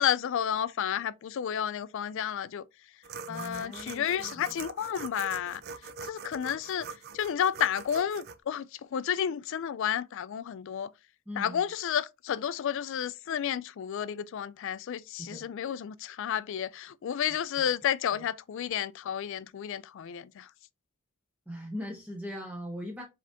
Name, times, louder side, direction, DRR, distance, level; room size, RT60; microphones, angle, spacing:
voice 1, 0.0-2.6 3.3-5.6 6.1-6.9 7.1-8.7 8.9-10.9 11.4-20.5, left 9 dB, 60° left, 0.3 m, -31 dB
sound 1, 3.0-8.4, right 5 dB, 45° right, 0.4 m, -43 dB
voice 2, 3.3-4.6 11.3-11.6 15.2-15.5 17.6-17.7 18.1-18.2 21.5-23.0, equal, 5° right, 0.6 m, -40 dB
4.9 x 3.4 x 2.8 m
head